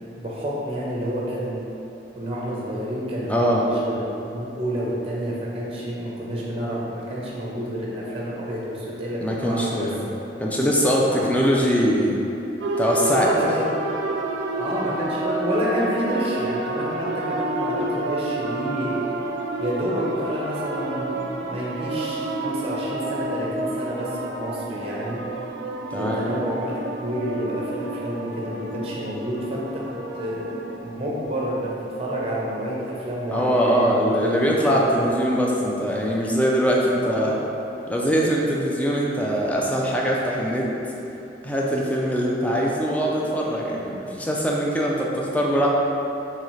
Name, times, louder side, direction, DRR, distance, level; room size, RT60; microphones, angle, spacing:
voice 1, 0.1-1.6 2.1-9.9 11.1-11.2 13.0-13.9 14.6-19.0 19.6-25.2 25.9-29.8 30.2-31.7 32.0-34.5 35.0-35.1 37.0-37.3, equal, 30° right, -5 dB, 0.7 m, -29 dB
voice 2, 3.3-3.6 9.2-10.1 10.4-12.2 12.8-13.3 25.9-26.5 33.3-37.4 37.9-40.7 41.4-45.7, equal, 10° left, -3 dB, 0.4 m, -22 dB
sound 1, 12.6-30.8, right 2 dB, 85° right, 0.4 m, -30 dB
3.9 x 3.1 x 3.1 m, 3.0 s
head